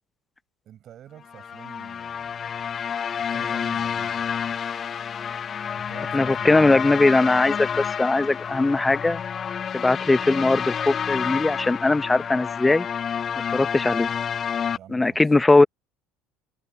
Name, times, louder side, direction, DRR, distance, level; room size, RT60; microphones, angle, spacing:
voice 1, 0.6-2.6 3.3-4.2 5.8-7.0 10.0-10.2 14.8-15.3, right 11 dB, 50° right, 8.0 m, -47 dB
sound 1, 1.3-14.8, left 7 dB, 40° left, 0.3 m, -29 dB
voice 2, 6.1-9.2 9.7-12.9 13.5-14.1 14.9-15.7, left 2 dB, 15° left, 1.1 m, -20 dB
hypercardioid pair, 65°, 0 cm